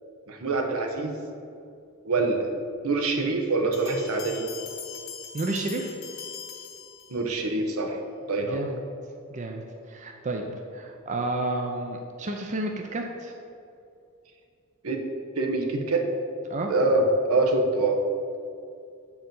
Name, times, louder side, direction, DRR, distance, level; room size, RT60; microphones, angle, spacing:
voice 1, 0.3-1.1 2.0-2.5 2.8-4.5 7.1-8.0 8.3-8.7 14.8-15.0 15.4-16.0 16.7-18.0, right 2 dB, 80° right, 3 dB, 0.9 m, -25 dB
sound 1, 3.7-7.5, left 7 dB, 65° left, 1.2 m, -41 dB
voice 2, 5.3-6.0 8.5-8.8 9.3-9.6 9.9-10.4 10.7-13.3 16.5-16.7, right 2 dB, 35° right, 2 dB, 0.5 m, -31 dB
7.7 x 4.7 x 5.3 m, 2.5 s
head